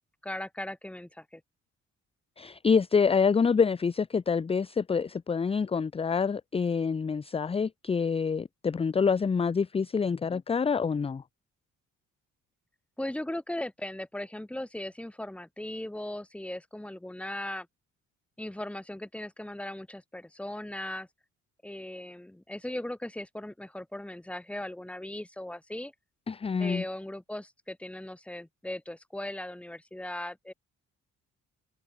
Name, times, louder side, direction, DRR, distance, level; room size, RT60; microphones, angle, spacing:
voice 1, 0.2-1.4 13.0-17.7 18.4-21.1 21.6-25.9 26.6-30.5, left 1 dB, 5° left, 1.0 m, -38 dB
voice 2, 2.4-11.2 26.3-26.8, left 5 dB, 20° left, 0.5 m, -26 dB
cardioid pair, 90°, 30 cm